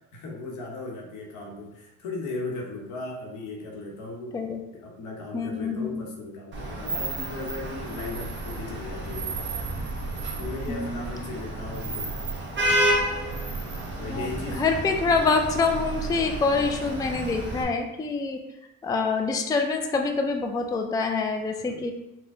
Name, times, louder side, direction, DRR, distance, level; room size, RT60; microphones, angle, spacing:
voice 1, 0.1-4.4 4.7-9.4 10.4-12.2 14.0-14.6 21.6-21.8, left 2 dB, 80° left, 0 dB, 1.0 m, -37 dB
voice 2, 5.3-6.0 10.7-11.1 14.1-18.4 18.8-21.9, left 4 dB, 15° left, 4 dB, 0.3 m, -26 dB
Vehicle horn car horn honking / Traffic noise roadway noise, 6.5-17.6, right 1 dB, 40° right, 1.1 m, -30 dB
4.4 x 2.2 x 3.7 m, 0.92 s
cardioid pair, 105°, 30 cm